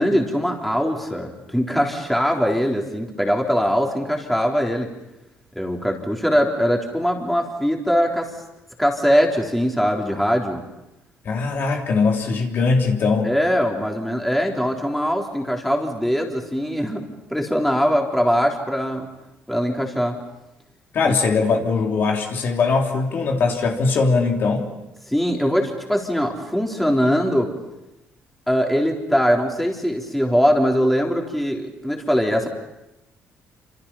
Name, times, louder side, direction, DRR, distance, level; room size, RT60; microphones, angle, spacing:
voice 1, 0.0-4.9 5.6-8.3 8.8-10.6 13.2-17.0 17.3-19.1 19.5-20.2 21.0-21.2 25.1-27.5 28.5-32.5, equal, 5° left, 0 dB, 3.8 m, -21 dB
voice 2, 11.2-13.3 20.9-24.7, left 4 dB, 55° left, 1 dB, 3.2 m, -20 dB
28.0 x 27.0 x 5.7 m, 0.96 s
cardioid pair, 120°, 4 cm